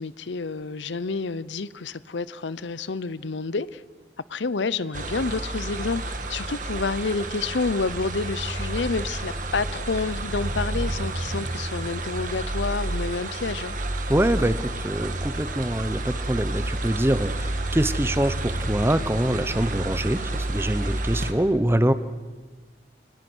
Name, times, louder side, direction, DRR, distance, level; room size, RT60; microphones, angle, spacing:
voice 1, 0.0-3.8 4.3-13.7, left 4 dB, 80° left, 0.7 m, -29 dB
sound 1, 4.9-21.3, right 2 dB, 45° right, 1.7 m, -30 dB
voice 2, 14.1-21.9, right 1 dB, 15° right, 0.8 m, -24 dB
27.5 x 20.0 x 6.3 m
head